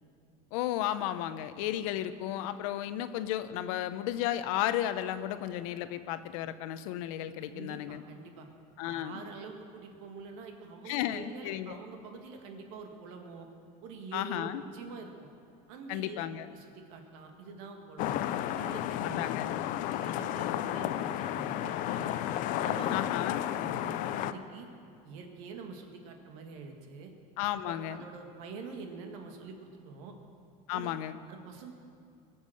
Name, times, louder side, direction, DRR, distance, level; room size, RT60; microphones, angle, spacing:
voice 1, 0.5-8.0 8.8-9.2 10.9-11.8 14.1-14.6 15.9-16.5 19.1-19.5 22.9-23.4 27.4-28.0 30.7-31.2, left 12 dB, 80° left, 12 dB, 0.8 m, -33 dB
voice 2, 7.4-8.5 8.8-13.5 13.8-15.3 15.7-16.2 16.5-18.2 18.6-19.2 19.7-22.2 22.5-23.0 23.5-24.7 25.0-27.1 27.6-30.1 30.7-30.9 31.3-31.7, right 4 dB, 75° right, 4 dB, 2.0 m, -45 dB
sound 1, 18.0-24.3, left 12 dB, 50° left, 0.5 m, -32 dB
21.5 x 7.3 x 6.5 m, 2.4 s
cardioid pair, 150°, 17 cm